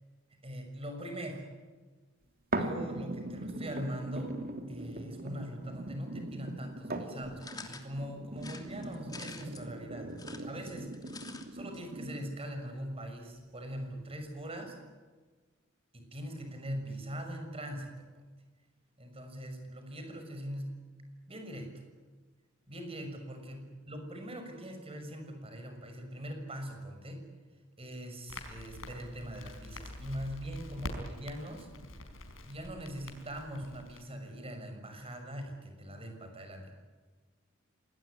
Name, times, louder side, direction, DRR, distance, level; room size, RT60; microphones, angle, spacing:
voice 1, 0.4-1.5 2.5-4.4 4.7-11.0 11.5-14.8 15.9-18.1 19.0-20.8 21.3-21.7 22.7-27.3 27.8-31.7 32.4-36.8, equal, 30° right, 5 dB, 6.2 m, -42 dB
sound 1, 2.5-12.5 13.1-13.2, right 1 dB, 50° right, 2.9 m, -40 dB
sound 2, 7.4-7.9 8.4-9.6 10.1-11.4 11.7-11.8 12.0-12.1, left 4 dB, 20° left, 2.9 m, -47 dB
Crackle, 28.3-34.0, left 1 dB, 80° left, 4.9 m, -45 dB
26.5 x 20.0 x 10.0 m, 1.4 s
head